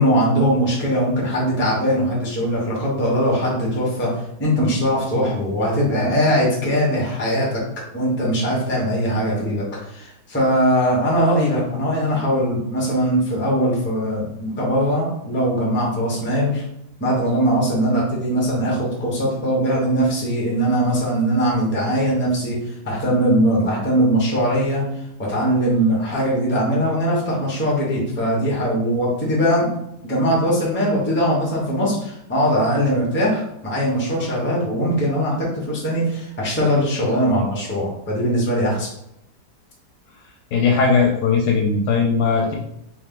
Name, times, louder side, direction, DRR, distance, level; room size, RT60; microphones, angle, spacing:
voice 1, 0.0-4.1 4.4-7.6 7.9-16.6 17.0-24.8 25.2-29.6 30.0-38.9, equal, 10° left, -4 dB, 0.8 m, -20 dB
voice 2, 40.5-42.5, left 5 dB, 75° left, 0 dB, 1.1 m, -18 dB
3.2 x 3.1 x 3.7 m, 0.80 s
omnidirectional pair, 1.8 m